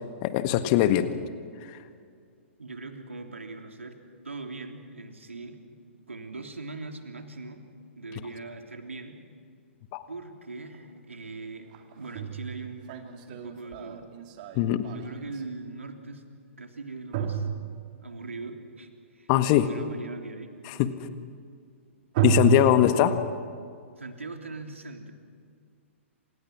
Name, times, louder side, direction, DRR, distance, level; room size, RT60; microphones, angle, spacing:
voice 1, 0.2-1.1 1.7-1.8 9.9-10.1 14.5-14.9 19.3-19.7 20.7-20.9 22.2-23.1, left 12 dB, 35° left, 10 dB, 1.6 m, -21 dB
voice 2, 2.6-4.0 4.2-5.6 6.1-7.6 7.9-9.2 10.1-14.1 14.9-16.2 16.6-17.5 18.0-20.5 22.5-22.8 23.0-23.3 24.0-25.1, right 3 dB, 75° right, 4 dB, 3.2 m, -41 dB
sound 1, 10.7-10.8 11.7-15.4 17.1-18.3 22.1-22.8, right 8 dB, 40° right, 2.5 m, -30 dB
28.0 x 27.5 x 6.2 m, 2.2 s
figure-of-eight pair, 115°, 7 cm